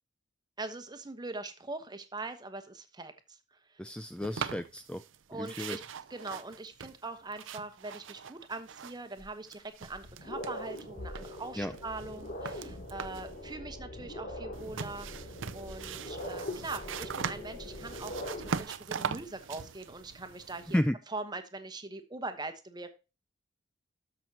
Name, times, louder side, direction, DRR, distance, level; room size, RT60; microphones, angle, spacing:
voice 1, 0.6-3.4 3.7-3.8 5.3-5.8 6.1-20.8 21.1-22.9, right 3 dB, 20° right, 1.1 m, -42 dB
voice 2, 3.8-5.0 5.4-5.8 11.6-11.7 20.7-21.0, left 1 dB, 5° left, 0.3 m, -32 dB
sound 1, 4.2-5.2 5.4-9.2 9.4-10.8 11.2-13.4 14.5-20.8, right 6 dB, 75° right, 0.6 m, -41 dB
sound 2, 9.2-9.3 9.8-18.6, left 1 dB, 45° left, 2.6 m, -42 dB
13.0 x 6.1 x 2.9 m
head